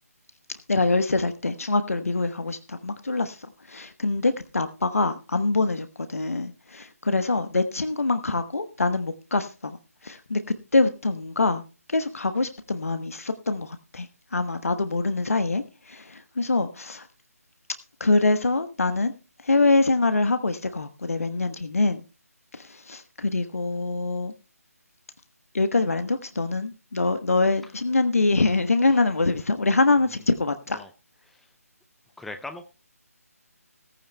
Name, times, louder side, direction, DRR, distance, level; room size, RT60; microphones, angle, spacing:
voice 1, 0.7-9.8 10.0-10.4 10.7-11.6 11.9-17.1 18.0-19.1 19.4-22.0 22.5-24.3 25.5-30.8, left 3 dB, 65° left, 9 dB, 1.2 m, -24 dB
voice 2, 32.2-32.6, left 2 dB, ahead, 7 dB, 0.6 m, -39 dB
17.0 x 15.0 x 2.2 m, 0.33 s
figure-of-eight pair, 150°, 8 cm